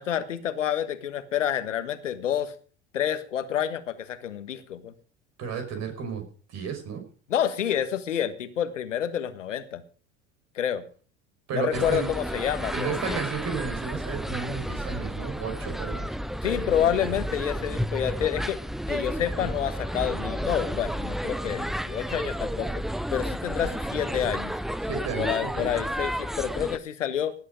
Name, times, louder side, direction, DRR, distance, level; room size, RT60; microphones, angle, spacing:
voice 1, 0.0-2.5 2.9-4.9 7.3-9.8 10.5-10.8 11.5-13.2 16.4-18.6 18.9-22.8 23.1-24.6 25.2-27.3, left 9 dB, 80° left, 12 dB, 1.5 m, -28 dB
voice 2, 5.4-7.0 11.5-12.1 12.7-16.1 24.9-25.7, right 6 dB, 50° right, 5 dB, 5.6 m, -33 dB
sound 1, 11.7-26.8, equal, ahead, 0.6 m, -32 dB
18.0 x 8.2 x 5.2 m, 0.41 s
figure-of-eight pair, 70°, 37 cm